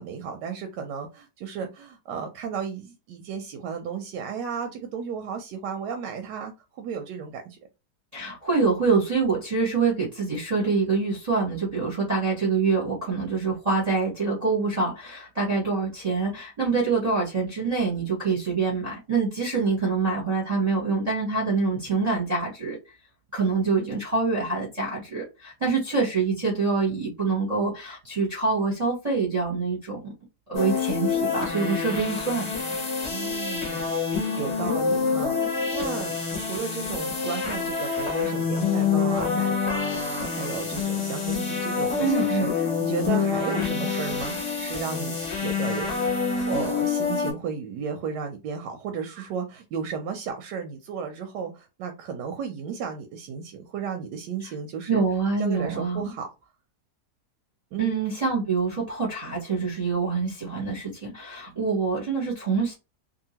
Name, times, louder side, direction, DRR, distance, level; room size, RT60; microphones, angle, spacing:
voice 1, 0.0-7.6 33.1-46.1 46.5-55.0 55.4-56.3 57.7-58.0, right 6 dB, 90° right, 1.2 m, -34 dB
voice 2, 8.1-22.8 23.3-30.0 30.5-32.4 42.0-42.5 54.4-54.5 54.9-56.1 57.8-62.7, right 4 dB, 30° right, 0.9 m, -25 dB
sound 1, 30.5-47.3, left 5 dB, 25° left, 0.7 m, -27 dB
2.7 x 2.6 x 2.8 m
omnidirectional pair, 1.8 m